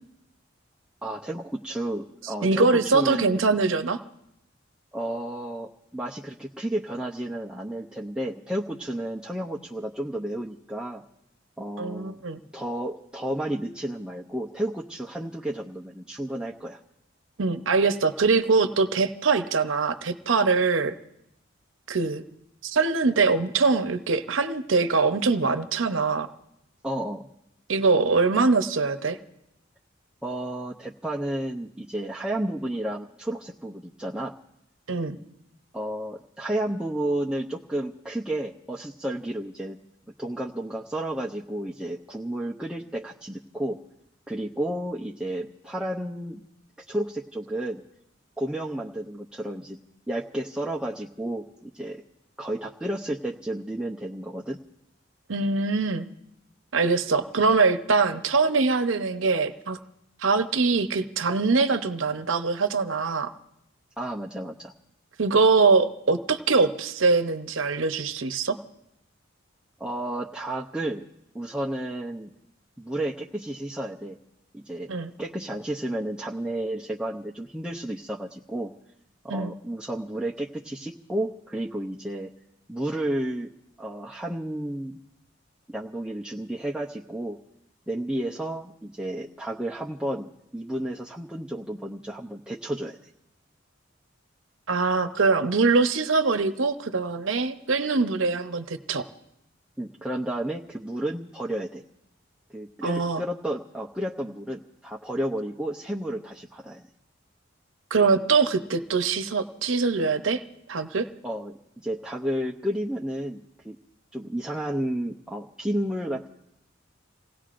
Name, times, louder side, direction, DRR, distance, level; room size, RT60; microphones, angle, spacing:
voice 1, 1.0-3.4 4.9-11.0 11.6-12.2 12.5-16.8 26.8-27.3 30.2-34.3 35.7-39.8 40.2-43.8 44.3-46.4 46.9-47.8 48.4-49.8 50.1-52.0 52.4-54.6 64.0-64.7 69.8-71.0 71.3-72.3 72.8-74.2 74.5-74.9 75.2-78.7 79.2-82.3 82.7-83.5 83.8-85.0 85.7-87.4 87.9-93.0 99.8-101.8 102.5-106.8 111.2-113.8 114.1-116.3, right 1 dB, 5° right, -3 dB, 0.6 m, -32 dB
voice 2, 2.4-4.0 11.8-12.4 17.4-20.9 21.9-22.2 22.6-26.3 27.7-29.2 34.9-35.2 55.3-56.1 56.7-59.8 60.2-63.3 65.2-68.6 74.9-75.1 79.3-79.5 94.7-99.1 102.8-103.2 107.9-110.4 110.7-111.1, right 4 dB, 75° right, 10 dB, 0.8 m, -23 dB
28.5 x 18.0 x 2.5 m, 0.83 s
head